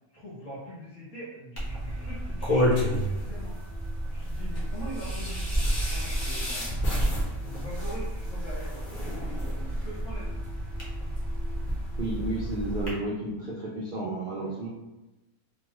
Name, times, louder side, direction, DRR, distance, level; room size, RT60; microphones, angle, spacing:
voice 1, 0.1-3.6 4.1-6.7 7.4-10.4 14.4-14.6, right 1 dB, 65° left, -7 dB, 1.2 m, -43 dB
sound 1, 1.6-12.9, equal, 40° left, 0.8 m, -30 dB
voice 2, 12.0-14.7, right 2 dB, 85° right, -5 dB, 0.4 m, -32 dB
3.1 x 2.2 x 3.0 m, 1.0 s
omnidirectional pair, 1.5 m